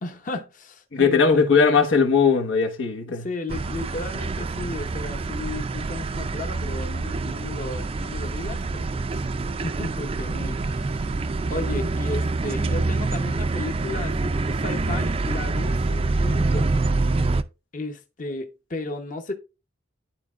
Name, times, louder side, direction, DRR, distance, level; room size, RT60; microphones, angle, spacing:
voice 1, 0.0-1.8 3.1-9.2 9.6-11.2 11.5-16.7 17.7-19.3, left 2 dB, 40° left, 0.8 m, -34 dB
voice 2, 0.9-3.3, left 5 dB, 90° left, 1.3 m, -19 dB
sound 1, 3.5-17.4, right 3 dB, 30° right, 0.3 m, -26 dB
11.5 x 4.4 x 2.4 m
head